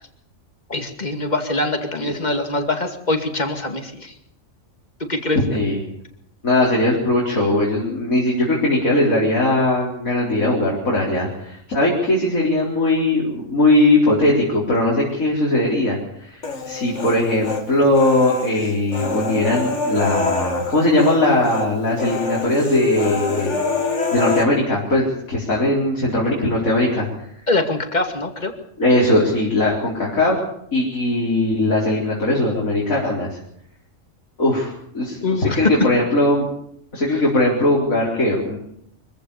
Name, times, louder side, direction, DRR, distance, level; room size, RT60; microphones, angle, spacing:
voice 1, 0.7-4.1 5.0-5.4 27.5-28.5 35.2-35.7 37.1-37.2, left 2 dB, 30° left, 5 dB, 2.5 m, -23 dB
voice 2, 6.4-23.5 24.1-27.1 28.8-30.4 30.7-33.4 34.4-36.5 36.9-38.6, left 1 dB, 90° left, -4 dB, 4.7 m, -19 dB
Human voice, 16.4-17.6 18.0-21.2 21.4-21.7 22.0-24.4, left 4 dB, 60° left, 2.5 m, -25 dB
24.5 x 15.5 x 7.0 m, 0.72 s
omnidirectional pair, 1.4 m